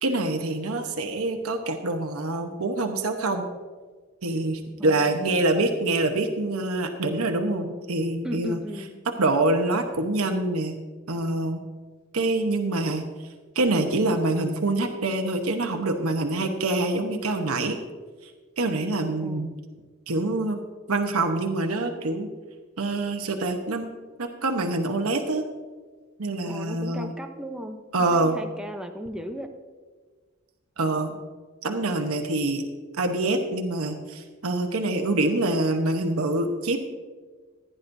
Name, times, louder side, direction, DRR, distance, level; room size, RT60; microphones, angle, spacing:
voice 1, 0.0-3.5 4.2-8.6 9.2-10.8 11.1-11.6 12.1-13.1 13.5-17.8 18.2-18.3 18.6-19.5 20.1-20.6 20.9-22.3 22.8-23.9 24.2-25.4 26.2-27.1 27.9-28.4 30.8-31.1 31.6-32.6 33.0-36.8, right 2 dB, 90° right, 4 dB, 1.0 m, -25 dB
voice 2, 4.8-5.4 8.2-9.0 19.2-19.6 26.5-29.5, equal, 5° right, 4 dB, 0.7 m, -36 dB
15.5 x 10.5 x 2.7 m, 1.4 s
head